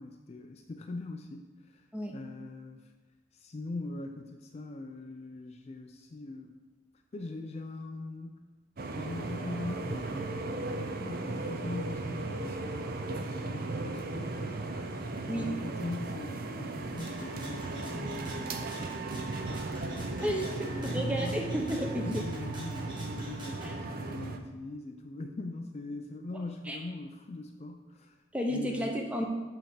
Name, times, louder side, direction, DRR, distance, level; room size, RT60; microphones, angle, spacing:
voice 1, 0.0-2.9 3.3-6.6 7.1-8.4 9.0-14.8 15.1-18.7 19.1-21.5 22.0-28.2 28.5-29.0, left 2 dB, 35° left, 5 dB, 0.3 m, -42 dB
sound 1, 8.8-24.4, right 2 dB, 50° right, 0.5 m, -36 dB
Rattle (instrument), 17.0-23.7, right 1 dB, 25° right, 1.6 m, -49 dB
voice 2, 20.2-22.2 23.6-23.8 26.7-26.8 28.3-29.3, equal, 5° right, 1 dB, 0.7 m, -32 dB
7.6 x 3.4 x 5.6 m, 1.2 s
head